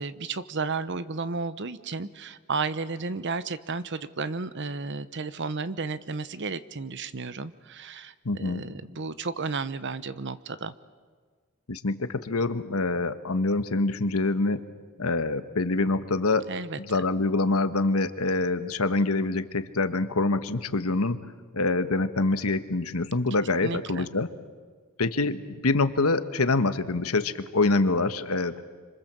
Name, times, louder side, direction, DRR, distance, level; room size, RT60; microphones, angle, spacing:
voice 1, 0.0-10.7 16.5-16.8 23.6-24.1, right 4 dB, 55° right, 14 dB, 0.9 m, -33 dB
voice 2, 8.2-8.6 11.7-14.6 15.0-16.5 16.9-21.2 21.5-24.3 25.0-28.6, left 3 dB, 80° left, 11 dB, 1.3 m, -25 dB
27.0 x 25.5 x 7.5 m, 1.6 s
head